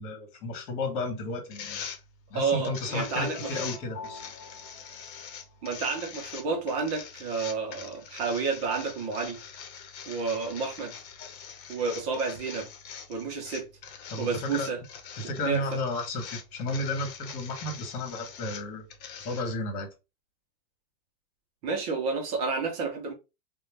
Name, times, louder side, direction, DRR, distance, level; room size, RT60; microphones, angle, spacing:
voice 1, 0.0-1.8 2.3-4.2 11.2-11.3 14.1-14.7 15.1-18.9 19.2-19.9, left 2 dB, 60° left, 1.3 m, -33 dB
sound 1, 1.5-19.4, left 7 dB, 85° left, 0.8 m, -44 dB
voice 2, 2.3-3.6 5.6-9.4 10.1-10.9 11.7-12.7 13.1-13.7 14.2-14.8 15.4-15.8 21.6-23.1, right 4 dB, 25° right, 0.4 m, -30 dB
sound 2, 2.9-5.9, left 3 dB, 10° left, 0.9 m, -45 dB
2.4 x 2.2 x 3.2 m
supercardioid pair, 155°, 50 cm